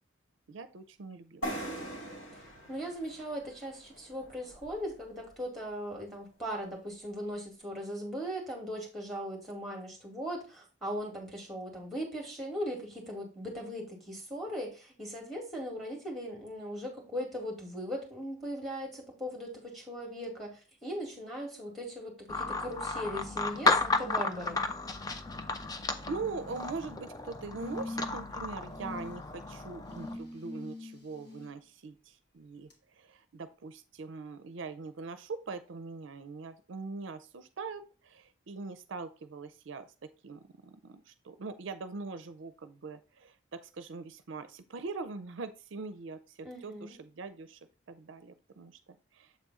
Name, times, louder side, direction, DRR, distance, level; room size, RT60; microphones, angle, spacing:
voice 1, 0.5-1.9 25.7-32.7 33.0-39.9 40.2-47.6 47.9-48.8 49.1-49.3, right 4 dB, 70° right, 12 dB, 0.5 m, -42 dB
sound 1, 1.4-5.1, right 1 dB, 75° left, 2.8 m, -41 dB
voice 2, 2.3-24.6 46.4-47.0, equal, ahead, 0 dB, 2.1 m, -39 dB
sound 2, 22.3-30.2, left 3 dB, 20° left, 0.4 m, -33 dB
sound 3, 26.3-26.9 27.6-28.3 28.7-29.1 29.9-31.5 32.7-32.8, left 2 dB, 55° left, 1.9 m, -43 dB
7.4 x 3.7 x 4.0 m, 0.34 s
head